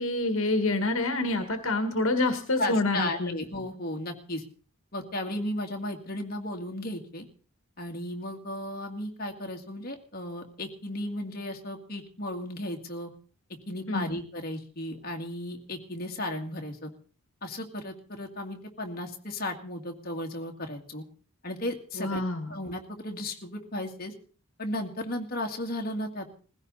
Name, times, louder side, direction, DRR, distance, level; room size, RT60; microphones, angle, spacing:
voice 1, 0.0-3.4 13.9-14.2 22.0-22.5, left 2 dB, 65° left, 8 dB, 1.9 m, -27 dB
voice 2, 2.6-4.4 4.9-7.3 7.8-13.1 13.7-16.9 17.4-21.0 21.4-24.1 24.6-26.3, left 1 dB, 40° left, 2 dB, 2.3 m, -35 dB
20.5 x 16.0 x 4.1 m, 0.40 s
head